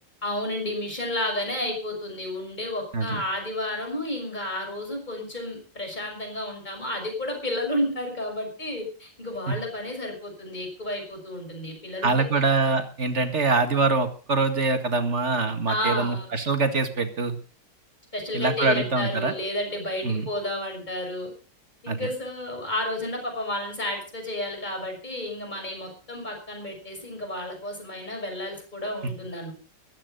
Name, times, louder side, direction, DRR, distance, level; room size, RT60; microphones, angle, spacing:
voice 1, 0.2-12.1 15.7-16.3 18.1-21.3 21.8-29.5, left 1 dB, 25° left, 3 dB, 6.1 m, -31 dB
voice 2, 12.0-17.4 18.3-19.3 20.0-20.3 21.9-22.1, right 3 dB, 40° right, 8 dB, 2.2 m, -24 dB
15.0 x 13.5 x 5.3 m, 0.37 s
omnidirectional pair, 1.9 m